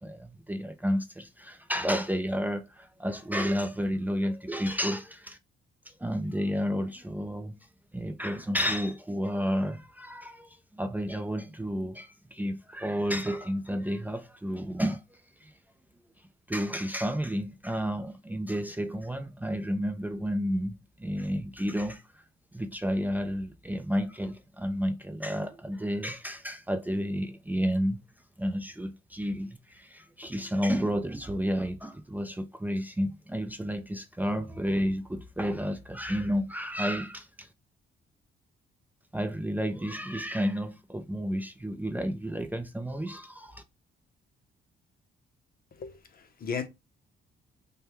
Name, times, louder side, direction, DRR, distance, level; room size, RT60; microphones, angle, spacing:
voice 1, 0.0-5.4 5.9-7.6 7.9-15.0 15.4-15.5 16.5-20.7 21.0-22.2 22.5-28.0 28.4-37.5 39.1-43.6, equal, 10° right, 0.5 m, -31 dB
voice 2, 45.8-46.7, left 6 dB, 50° left, 0.8 m, -36 dB
5.1 x 2.2 x 3.1 m
cardioid pair, 90°, 20 cm